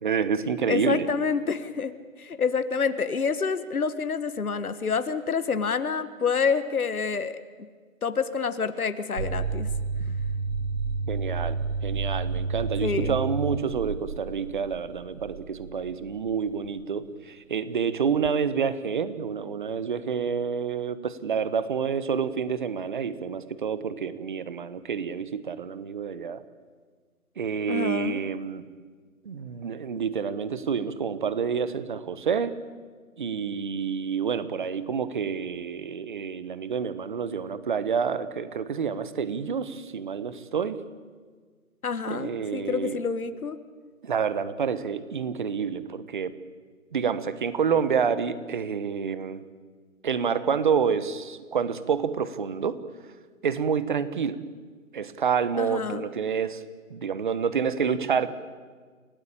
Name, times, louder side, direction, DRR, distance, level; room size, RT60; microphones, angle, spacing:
voice 1, 0.0-1.1 11.1-26.4 27.4-28.6 29.2-32.5 33.2-40.8 42.1-43.0 44.0-46.3 46.9-49.4 50.0-52.8 53.4-54.4 54.9-56.6 56.9-58.3, right 6 dB, 35° right, 14 dB, 1.2 m, -28 dB
voice 2, 0.7-7.4 8.0-9.7 12.8-13.2 27.7-28.2 41.8-43.6 55.6-56.1, left 5 dB, 90° left, 11 dB, 1.6 m, -28 dB
sound 1, 9.2-16.8, right 4 dB, 60° right, 1.1 m, -31 dB
28.5 x 17.5 x 8.7 m, 1.6 s
hypercardioid pair, 165°, 42 cm